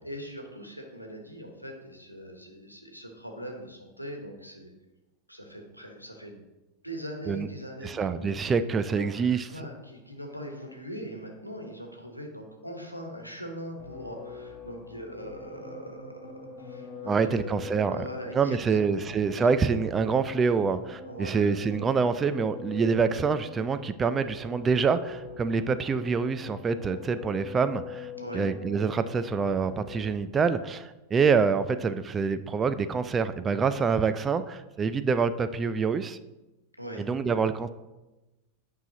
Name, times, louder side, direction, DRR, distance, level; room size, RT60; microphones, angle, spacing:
voice 1, 0.0-4.7 5.3-6.4 6.8-8.3 8.8-19.4 21.0-21.6 28.2-28.5 36.8-37.1, equal, 90° left, 2 dB, 1.1 m, -41 dB
voice 2, 7.8-9.5 17.1-18.1 18.3-36.2 37.0-37.7, right 5 dB, 20° right, 12 dB, 0.3 m, -26 dB
sound 1, 13.8-30.4, left 6 dB, 30° left, 1.5 m, -44 dB
9.3 x 5.6 x 2.9 m, 1.0 s
figure-of-eight pair, 90°, 0 cm